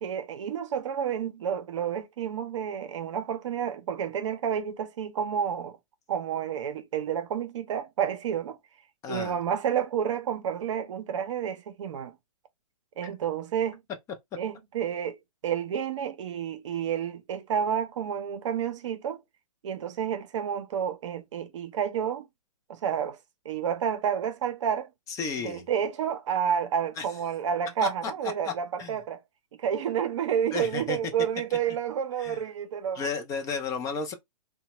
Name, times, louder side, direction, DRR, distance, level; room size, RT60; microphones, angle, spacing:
voice 1, 0.0-5.8 6.1-8.6 9.1-12.2 13.0-13.8 14.4-15.2 15.4-19.2 19.6-22.3 22.7-23.2 23.4-24.9 25.4-29.2 29.6-33.1, right 8 dB, 55° right, 0.6 m, -30 dB
voice 2, 9.0-9.4 13.0-13.1 25.1-25.6 27.0-27.1 27.8-27.9 28.8-29.0 30.5-31.0 32.2-32.4 32.9-34.1, left 5 dB, 15° left, 0.5 m, -32 dB
2.8 x 2.1 x 2.9 m
hypercardioid pair, 125°, 18 cm